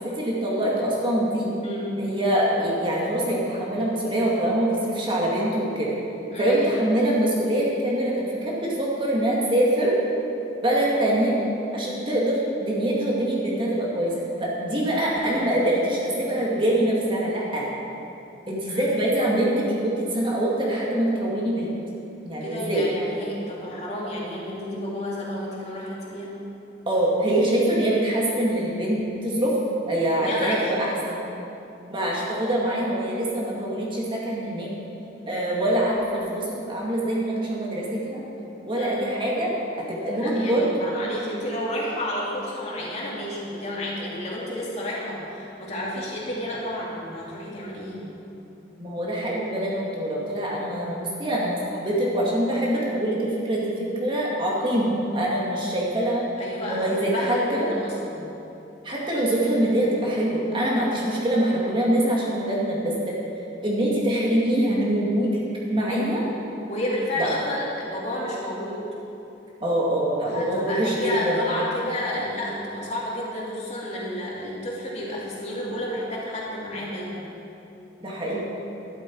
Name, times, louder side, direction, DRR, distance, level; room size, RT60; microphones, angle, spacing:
voice 1, 0.0-1.5 2.0-5.9 6.4-9.9 10.6-11.3 11.7-14.1 14.4-17.7 18.5-21.7 22.2-22.9 26.9-31.2 31.9-34.7 35.3-38.2 38.7-39.5 39.9-40.9 48.8-56.2 56.7-57.7 58.8-63.2 63.6-65.4 65.7-66.2 67.2-67.3 69.6-71.5 78.0-78.5, right 1 dB, 30° right, -4 dB, 2.0 m, -24 dB
voice 2, 1.6-2.0 6.3-6.6 18.7-18.9 22.4-26.3 30.2-30.7 38.7-39.1 40.0-48.1 56.4-58.3 65.8-66.2 66.7-68.8 70.2-77.3, left 1 dB, 40° left, -5 dB, 2.8 m, -31 dB
12.5 x 12.0 x 4.6 m, 2.9 s
head